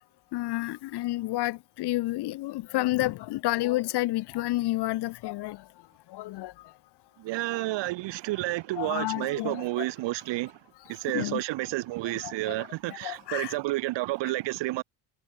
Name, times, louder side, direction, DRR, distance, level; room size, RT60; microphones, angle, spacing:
voice 1, 0.3-5.6 6.1-6.5 8.8-9.9 11.1-11.4 12.2-13.6, left 17 dB, 60° left, 0.8 m, -30 dB
voice 2, 7.2-10.6 10.9-14.8, right 19 dB, 70° right, 1.4 m, -30 dB
supercardioid pair, 65°, 45 cm